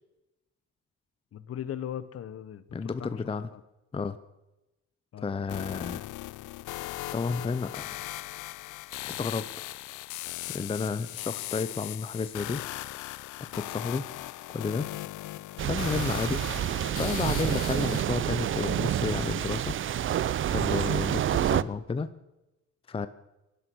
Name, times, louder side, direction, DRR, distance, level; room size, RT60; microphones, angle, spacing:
voice 1, 1.3-3.2 3.5-3.6 5.1-5.3, left 10 dB, 50° left, 15 dB, 1.0 m, -38 dB
voice 2, 2.7-3.5 3.9-4.2 5.2-6.0 7.1-8.0 9.0-9.5 10.5-12.6 13.4-14.0 14.5-14.9 15.7-16.4 17.0-19.7 20.5-22.1 22.9-23.1, left 4 dB, 20° left, 12 dB, 0.6 m, -31 dB
sound 1, 5.5-18.0, left 17 dB, 75° left, 0.5 m, -38 dB
sound 2, 15.6-21.6, right 10 dB, 40° right, 0.5 m, -28 dB
18.0 x 11.0 x 6.2 m, 1.0 s
cardioid pair, 105°, 31 cm